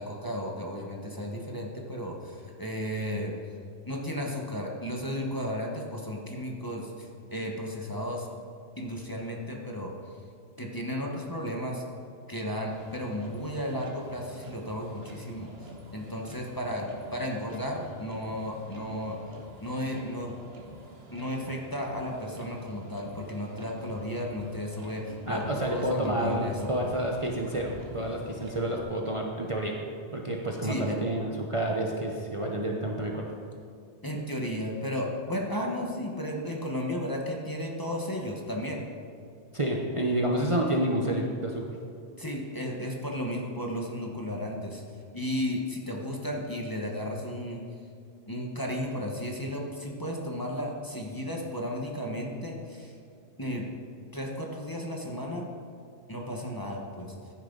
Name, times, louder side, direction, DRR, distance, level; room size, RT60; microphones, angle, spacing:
voice 1, 0.0-3.3 3.8-8.3 8.8-10.1 10.6-11.8 12.3-19.2 19.6-20.4 21.1-26.7 30.6-31.0 34.0-38.9 42.2-44.8 45.1-47.6 48.3-53.0 53.4-53.7 54.1-55.5 56.1-57.1, equal, 20° left, -1 dB, 1.3 m, -34 dB
Motor vehicle (road), 12.7-28.8, right 1 dB, 60° right, 1.7 m, -47 dB
voice 2, 25.3-29.7 30.1-33.3 39.5-41.8, right 1 dB, 30° right, -1 dB, 1.0 m, -29 dB
15.5 x 9.9 x 4.0 m, 2.4 s
omnidirectional pair, 1.2 m